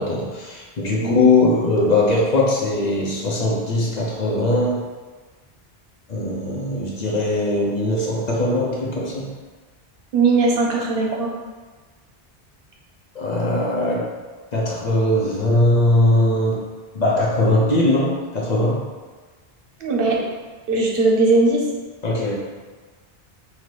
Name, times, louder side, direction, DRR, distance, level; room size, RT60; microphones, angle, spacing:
voice 1, 0.0-4.8 6.1-9.3 13.1-14.0 14.5-16.6 16.9-18.8 22.0-22.4, left 1 dB, 50° left, -3 dB, 0.7 m, -20 dB
voice 2, 10.1-11.3 19.8-20.2 20.7-21.6, right 3 dB, 65° right, -1 dB, 0.9 m, -18 dB
4.2 x 2.8 x 3.1 m, 1.4 s
omnidirectional pair, 1.0 m